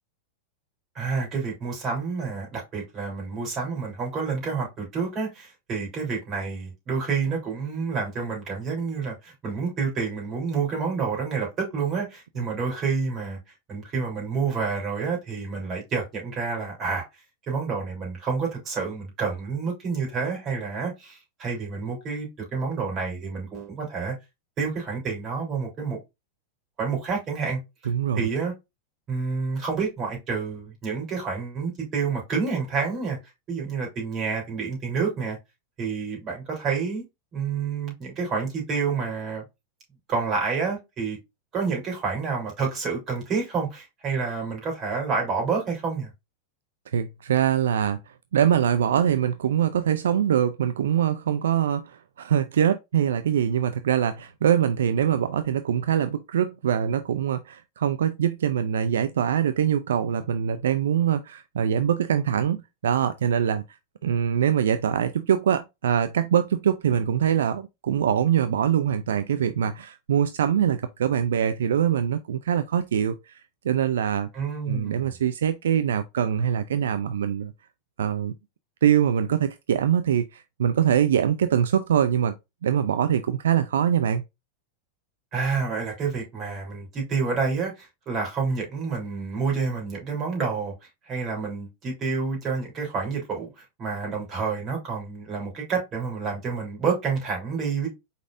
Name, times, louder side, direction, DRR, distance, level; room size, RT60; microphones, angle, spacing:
voice 1, 1.0-13.4 13.7-17.0 17.5-24.1 24.6-26.0 26.8-27.6 28.1-28.5 29.1-33.2 33.5-35.4 35.8-37.0 37.3-39.4 40.1-41.2 41.5-46.1 74.3-75.0 85.3-90.7 91.0-97.9, right 5 dB, 35° right, 3.3 m, -28 dB
voice 2, 27.9-28.3 46.9-48.0 48.3-63.6 64.0-74.3 74.7-77.5 78.0-78.3 78.8-82.3 82.6-84.2, right 9 dB, 85° right, 0.3 m, -23 dB
4.8 x 4.1 x 2.5 m
hypercardioid pair, 115°, 0 cm